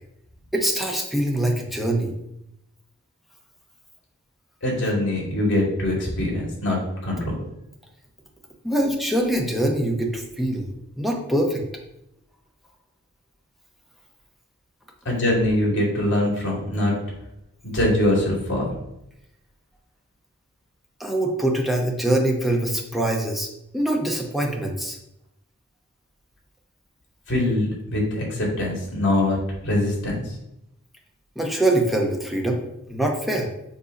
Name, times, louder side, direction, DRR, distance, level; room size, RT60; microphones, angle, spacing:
voice 1, 0.5-2.1 8.6-10.7 11.0-11.6 21.0-23.5 23.7-25.0 31.4-32.6 32.9-33.5, right 1 dB, ahead, 0 dB, 0.9 m, -23 dB
voice 2, 4.6-7.3 15.0-16.9 17.6-18.7 27.3-29.4 29.6-30.2, left 1 dB, 60° left, -2 dB, 2.4 m, -23 dB
7.3 x 2.7 x 5.2 m, 0.84 s
head